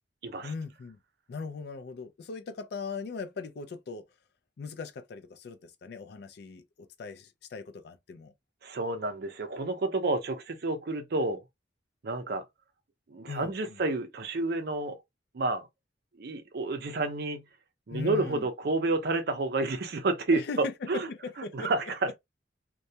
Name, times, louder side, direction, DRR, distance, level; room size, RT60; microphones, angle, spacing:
voice 1, 0.4-1.0 1.3-4.1 4.6-8.3 13.3-13.8 17.9-18.5 20.3-21.7, left 4 dB, 60° left, 0.4 m, -39 dB
voice 2, 8.6-11.4 12.0-12.4 13.1-15.0 15.3-15.7 16.2-17.4 17.9-21.1 21.5-21.8, right 2 dB, 60° right, 0.5 m, -30 dB
2.3 x 2.1 x 2.7 m
head